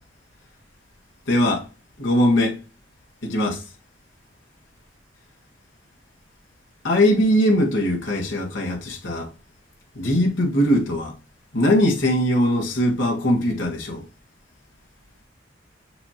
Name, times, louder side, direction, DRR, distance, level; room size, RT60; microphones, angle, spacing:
voice 1, 1.3-1.6 2.0-2.6 3.2-3.6 6.8-9.3 10.0-11.1 11.5-14.0, left 1 dB, 75° left, 1.8 m, -20 dB
6.7 x 2.9 x 5.0 m
head